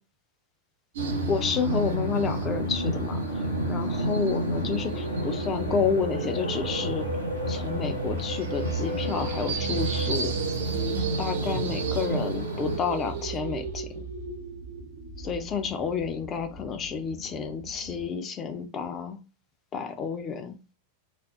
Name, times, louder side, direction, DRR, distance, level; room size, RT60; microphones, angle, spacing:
sound 1, 0.9-18.1, right 4 dB, 60° right, 0.5 m, -34 dB
sound 2, 1.0-12.8, equal, 85° left, 0.8 m, -31 dB
voice 1, 1.3-7.1 7.5-10.3 11.2-14.0 15.2-19.2 19.7-20.6, left 6 dB, 30° left, 7 dB, 0.5 m, -30 dB
4.0 x 2.0 x 2.3 m, 0.31 s
figure-of-eight pair, 90°, 0 cm